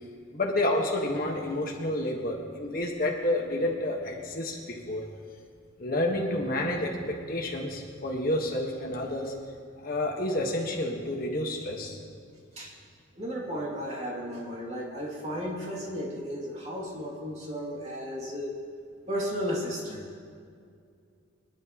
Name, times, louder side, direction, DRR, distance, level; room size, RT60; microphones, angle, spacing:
voice 1, 0.3-5.0 5.8-9.3 9.8-12.0, left 1 dB, 45° left, -1 dB, 1.5 m, -29 dB
voice 2, 13.2-18.5 19.1-20.1, equal, 35° right, -4 dB, 2.7 m, -34 dB
24.0 x 11.0 x 3.1 m, 2.3 s
head